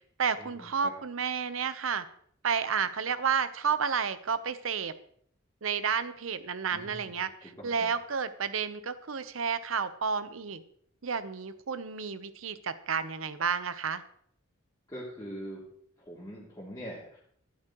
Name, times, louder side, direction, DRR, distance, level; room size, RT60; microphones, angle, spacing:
voice 1, 0.2-2.1 2.4-4.9 5.6-10.6 11.0-14.0, right 6 dB, 85° right, 12 dB, 0.8 m, -31 dB
voice 2, 6.7-7.2 7.4-7.9 14.9-15.6 16.0-17.2, equal, 20° left, -6 dB, 2.8 m, -43 dB
14.0 x 11.5 x 3.0 m, 0.64 s
head